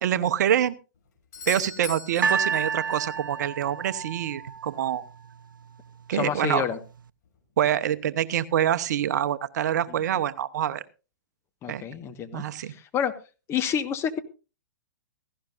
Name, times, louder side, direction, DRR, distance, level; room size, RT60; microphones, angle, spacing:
voice 1, 0.0-0.7 1.5-5.0 6.1-6.6 7.6-10.8 11.7-11.8 12.3-12.7, right 10 dB, 55° right, 13 dB, 0.9 m, -26 dB
Doorbell, 1.3-3.2 7.2-7.3, left 5 dB, 55° left, 6.8 m, -39 dB
sound 1, 2.2-5.4 6.2-6.3, right 6 dB, 80° right, 0.6 m, -30 dB
voice 2, 6.1-6.8 9.9-10.0 11.6-13.1 13.5-14.2, left 8 dB, 25° left, 8 dB, 1.4 m, -29 dB
17.0 x 15.5 x 2.6 m, 0.32 s
hypercardioid pair, 120°, 11 cm